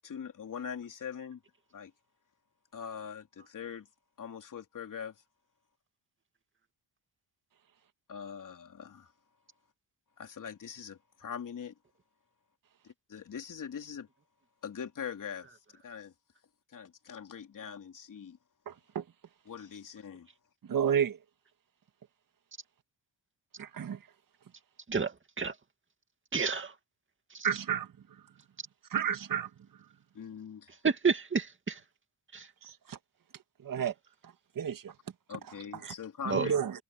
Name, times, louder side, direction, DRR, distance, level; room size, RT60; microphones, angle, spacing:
voice 1, 0.0-1.4 1.7-1.9 2.7-3.9 4.2-5.2 8.1-9.1 10.2-11.7 12.8-14.1 14.6-15.5 15.8-16.1 16.7-18.4 19.5-20.3 30.2-30.7 35.3-36.6, left 7 dB, 50° left, 3.4 m, -42 dB
voice 2, 18.7-19.0 20.7-21.2 23.6-24.0 27.4-27.9 28.9-29.5 32.6-33.0 33.6-33.9 34.6-34.9 36.3-36.7, right 8 dB, 50° right, 2.0 m, -31 dB
voice 3, 24.9-25.5 26.3-26.7 27.3-27.5 30.8-31.8 32.3-32.5 36.3-36.5, right 5 dB, 30° right, 2.3 m, -30 dB
cardioid pair, 120°, 41 cm